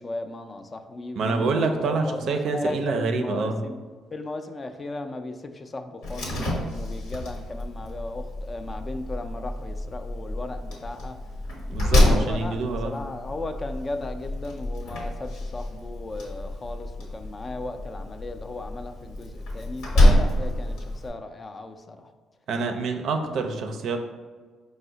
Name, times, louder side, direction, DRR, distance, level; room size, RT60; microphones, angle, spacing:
voice 1, 0.0-3.8 4.1-11.2 12.0-22.1, left 2 dB, 30° left, 6 dB, 0.3 m, -36 dB
voice 2, 1.2-3.6 11.7-12.9 22.5-24.0, right 4 dB, 70° right, 5 dB, 0.4 m, -26 dB
Slam, 6.0-21.1, left 1 dB, 85° left, 1.0 m, -27 dB
4.6 x 2.0 x 3.8 m, 1.5 s
cardioid pair, 80°, 0 cm